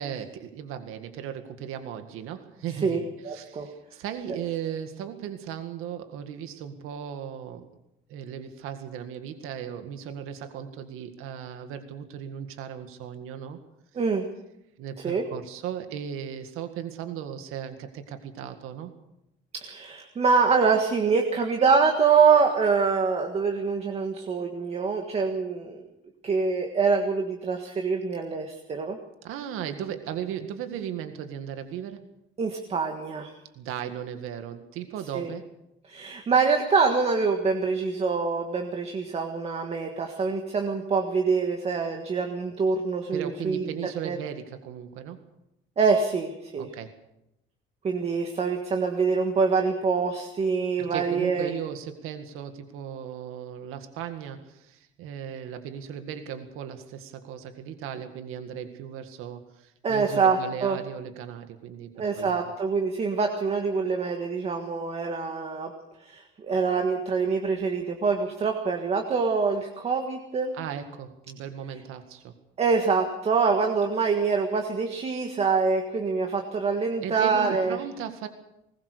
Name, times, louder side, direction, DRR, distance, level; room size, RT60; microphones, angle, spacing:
voice 1, 0.0-7.7 8.1-13.6 14.8-18.9 29.2-32.1 33.6-35.5 43.1-45.2 46.6-46.9 50.8-62.4 70.5-72.3 77.0-78.3, right 9 dB, 90° right, 8 dB, 1.9 m, -37 dB
voice 2, 3.2-3.7 13.9-14.3 15.0-15.2 19.5-25.8 26.2-29.0 32.4-33.3 35.1-35.3 35.9-43.7 44.0-44.2 45.8-46.7 47.8-51.5 59.8-60.8 62.0-65.7 66.0-70.6 72.6-77.8, right 5 dB, 30° right, 3 dB, 1.7 m, -25 dB
20.0 x 20.0 x 6.8 m, 0.86 s
cardioid pair, 180°, 21 cm